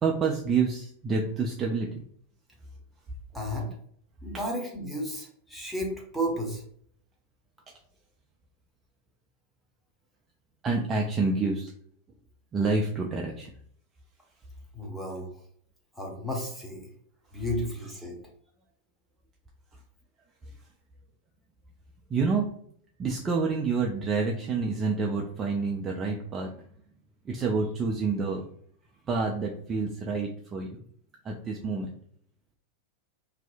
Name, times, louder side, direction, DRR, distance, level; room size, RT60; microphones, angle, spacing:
voice 1, 0.0-2.0 10.6-11.7 12.5-13.5 17.3-17.4 19.7-19.8 20.4-20.7 22.1-22.5 23.0-26.5 27.2-28.5 29.1-30.8 31.2-31.9, right 4 dB, 20° right, 0 dB, 0.3 m, -28 dB
voice 2, 3.3-3.7 4.2-6.6 14.7-15.3 15.9-16.9 17.3-18.2, equal, ahead, -2 dB, 0.8 m, -33 dB
2.6 x 2.0 x 2.5 m, 0.63 s
figure-of-eight pair, 90°, 0 cm